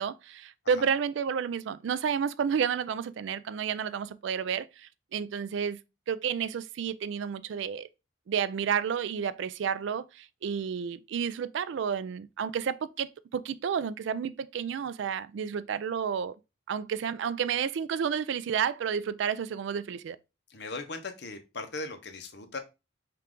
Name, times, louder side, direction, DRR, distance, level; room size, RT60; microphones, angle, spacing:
voice 1, 0.0-5.8 6.1-7.9 8.3-16.3 16.7-20.2, right 7 dB, 65° right, 0.3 m, -31 dB
voice 2, 20.5-22.6, left 3 dB, 55° left, 0.8 m, -38 dB
5.6 x 2.5 x 3.6 m
head